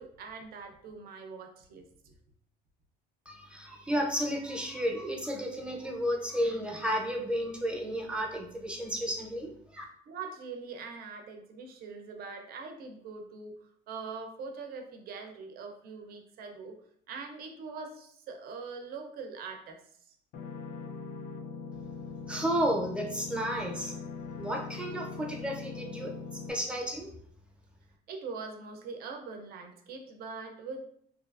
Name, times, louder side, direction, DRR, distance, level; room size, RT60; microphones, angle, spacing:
voice 1, 0.0-2.1 10.1-16.8 17.1-19.8 20.1-20.2 28.1-30.9, right 4 dB, 65° right, 4 dB, 0.5 m, -42 dB
voice 2, 3.3-9.8 22.3-23.9 24.3-27.1, equal, 5° right, 0 dB, 0.5 m, -32 dB
sound 1, 20.3-26.5, left 5 dB, 65° left, 0.4 m, -41 dB
2.7 x 2.3 x 2.3 m, 0.66 s
cardioid pair, 110°, 17 cm